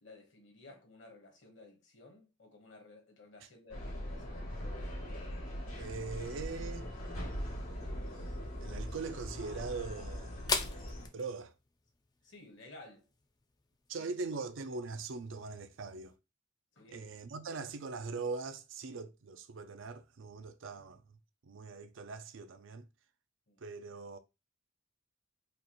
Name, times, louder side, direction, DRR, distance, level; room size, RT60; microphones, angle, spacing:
voice 1, 0.0-4.5 12.2-13.0 14.0-14.1 16.7-17.1 23.5-23.6, left 2 dB, 60° left, 1.3 m, -55 dB
sound 1, 3.7-11.1, equal, 85° left, 2.2 m, -41 dB
voice 2, 5.7-6.9 8.6-10.4 11.1-11.5 13.9-16.1 16.9-21.0 21.4-22.9 23.6-24.2, right 4 dB, 70° right, 0.5 m, -41 dB
sound 2, 8.0-16.2, left 4 dB, 20° left, 0.3 m, -44 dB
4.9 x 2.4 x 3.0 m
head